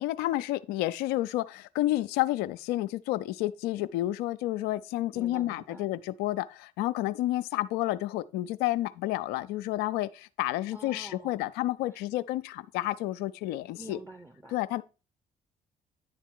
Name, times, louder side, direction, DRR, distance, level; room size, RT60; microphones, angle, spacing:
voice 1, 0.0-14.0 14.5-14.8, left 16 dB, 75° left, 0.4 m, -30 dB
voice 2, 5.1-5.9 10.7-11.4 11.9-12.1 13.8-14.6, right 1 dB, 10° right, 0.9 m, -47 dB
9.8 x 3.7 x 4.4 m
hypercardioid pair, 50°, 17 cm